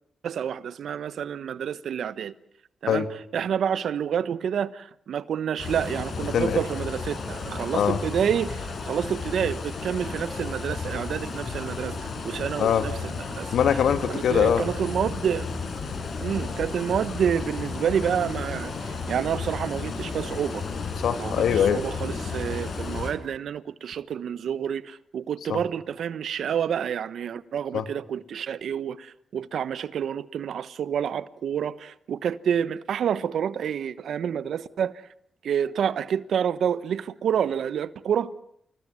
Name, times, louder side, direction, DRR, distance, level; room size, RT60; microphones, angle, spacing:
voice 1, 0.2-2.3 2.8-3.1 3.3-13.5 14.1-15.5 16.2-20.6 21.2-34.9 35.4-38.3, right 8 dB, 75° right, 1.2 m, -28 dB
sound 1, 5.6-23.1, left 4 dB, 65° left, 6.1 m, -33 dB
voice 2, 13.5-14.7 21.0-21.8 25.5-25.6 27.7-27.9, left 8 dB, 85° left, 2.3 m, -22 dB
29.0 x 20.0 x 9.5 m
cardioid pair, 60°, 0 cm